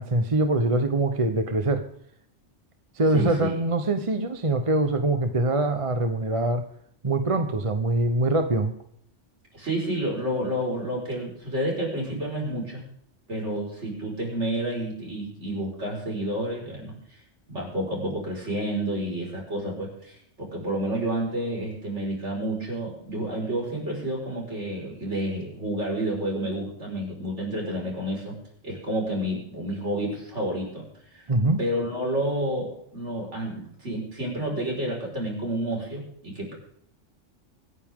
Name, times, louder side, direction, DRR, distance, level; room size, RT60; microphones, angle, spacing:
voice 1, 0.0-1.8 3.0-6.6 7.0-8.7 31.3-31.6, right 2 dB, 30° right, 7 dB, 1.0 m, -23 dB
voice 2, 3.1-3.5 9.5-12.8 13.3-17.0 17.5-28.4 28.6-30.8 31.1-31.3 31.6-36.5, right 1 dB, 65° right, -2 dB, 5.4 m, -30 dB
25.5 x 9.9 x 3.7 m, 0.68 s
omnidirectional pair, 1.3 m